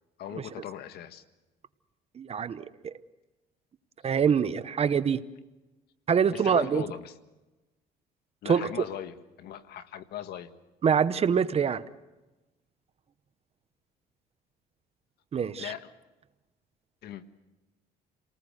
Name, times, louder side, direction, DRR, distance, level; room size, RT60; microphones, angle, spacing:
voice 1, 0.2-1.2 6.3-7.1 8.4-10.5 15.6-15.9 17.0-17.2, left 10 dB, 70° left, 10 dB, 1.6 m, -39 dB
voice 2, 2.2-2.9 4.0-5.2 6.1-6.8 8.4-8.7 10.8-11.8 15.3-15.7, right 7 dB, 35° right, 13 dB, 0.9 m, -25 dB
29.5 x 19.0 x 6.5 m, 1.1 s
cardioid pair, 110°, 17 cm